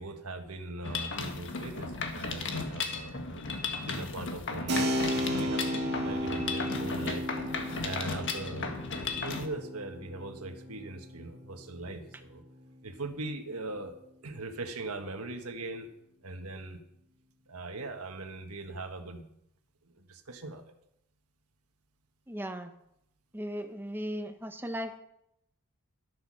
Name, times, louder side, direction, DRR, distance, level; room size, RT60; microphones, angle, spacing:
voice 1, 0.0-3.4 3.7-7.2 7.6-8.7 9.2-12.4 12.8-13.9 14.2-15.9 16.2-16.8 17.5-19.3 19.9-20.6, right 2 dB, 75° right, 6 dB, 1.4 m, -40 dB
Mechanisms, 0.8-9.5, left 4 dB, 55° left, 1.5 m, -35 dB
Keyboard (musical), 4.7-13.1, equal, 50° right, 2.0 m, -35 dB
voice 2, 22.3-22.7 23.3-25.0, equal, 10° right, 7 dB, 1.0 m, -37 dB
12.5 x 8.4 x 6.2 m, 0.78 s
head